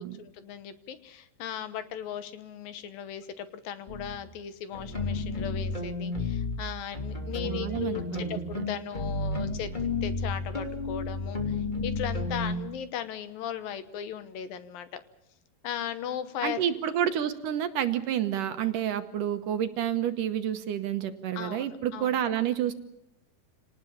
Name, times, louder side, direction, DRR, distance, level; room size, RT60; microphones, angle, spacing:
voice 1, 0.0-9.7 10.0-15.0 15.6-16.6 21.4-22.2, left 9 dB, 70° left, 12 dB, 2.7 m, -37 dB
sound 1, 3.9-4.2 4.7-6.6 6.9-12.6, left 3 dB, 15° left, 2.7 m, -32 dB
voice 2, 7.4-8.3 8.6-8.7 16.4-22.7, right 10 dB, 70° right, 9 dB, 2.4 m, -29 dB
27.5 x 19.0 x 7.2 m, 0.80 s
omnidirectional pair, 4.4 m